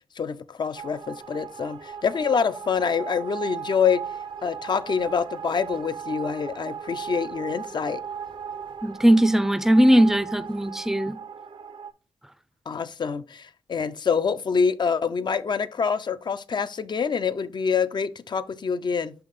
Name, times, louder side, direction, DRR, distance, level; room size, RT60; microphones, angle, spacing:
voice 1, 0.2-4.0 4.4-8.0 12.7-19.1, left 6 dB, 50° left, 0.5 m, -26 dB
sound 1, 0.7-11.9, right 7 dB, 55° right, 0.6 m, -37 dB
voice 2, 8.8-11.2, equal, 5° right, 0.5 m, -19 dB
5.7 x 3.4 x 5.2 m
cardioid pair, 70°, 10 cm